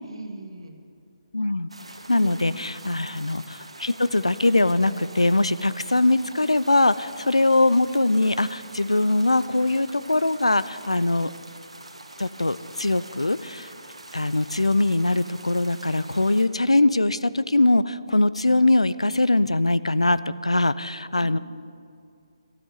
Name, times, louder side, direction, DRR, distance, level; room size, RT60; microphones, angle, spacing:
voice 1, 0.0-0.8 2.1-2.3 2.8-3.3 21.2-21.4, right 2 dB, 55° right, 3 dB, 2.0 m, -40 dB
voice 2, 1.3-1.7 2.1-11.3 12.2-13.7 14.1-21.4, left 2 dB, 75° left, 16 dB, 0.5 m, -22 dB
sound 1, 1.7-16.5, right 2 dB, 70° right, 1.6 m, -44 dB
13.0 x 8.9 x 9.4 m, 2.3 s
figure-of-eight pair, 145°, 3 cm